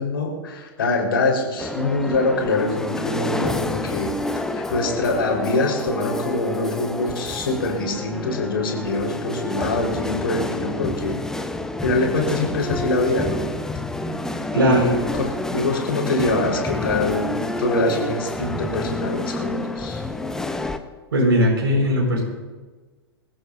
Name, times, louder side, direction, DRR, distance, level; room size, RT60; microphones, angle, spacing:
voice 1, 0.0-4.1 4.5-11.2 11.8-13.5 14.5-20.0, left 2 dB, 65° left, 0 dB, 4.6 m, -24 dB
sound 1, 1.6-20.8, left 2 dB, 5° left, 0.9 m, -28 dB
voice 2, 21.1-22.2, equal, 65° right, -2 dB, 5.1 m, -18 dB
27.0 x 15.0 x 2.7 m, 1.3 s
figure-of-eight pair, 100°, 13 cm